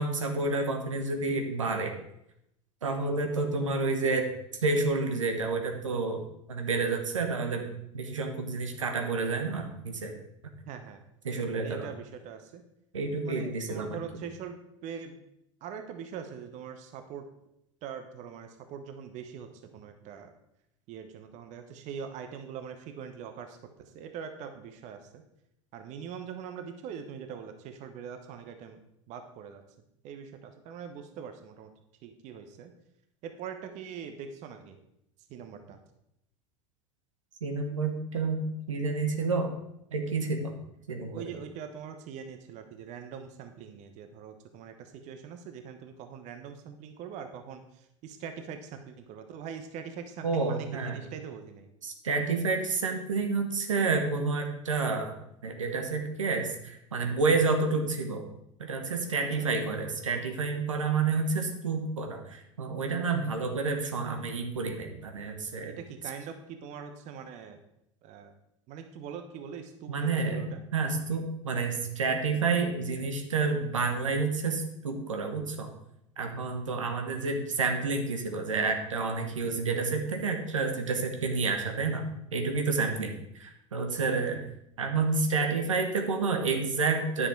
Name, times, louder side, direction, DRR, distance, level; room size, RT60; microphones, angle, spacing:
voice 1, 0.0-1.9 2.8-4.3 4.6-6.2 6.5-7.6 7.9-10.1 11.2-11.9 12.9-14.0 37.4-39.5 39.9-40.5 40.9-41.3 50.2-51.0 51.8-55.1 55.4-58.2 58.6-65.7 69.9-75.7 76.2-84.4 84.8-87.3, right 4 dB, 80° right, 4 dB, 1.2 m, -29 dB
voice 2, 10.7-11.0 11.6-12.6 13.1-15.2 15.6-17.2 17.8-19.5 19.7-20.3 20.9-23.6 23.9-25.2 25.7-28.8 29.1-29.6 30.0-31.7 32.0-32.7 33.2-34.8 35.3-35.8 41.1-47.6 48.0-51.7 59.4-59.5 65.7-67.6 68.0-68.3 68.7-70.6 82.9-83.0 83.9-84.1, right 7 dB, 45° right, 7 dB, 1.0 m, -42 dB
10.0 x 6.2 x 4.6 m, 0.80 s
figure-of-eight pair, 80°, 16 cm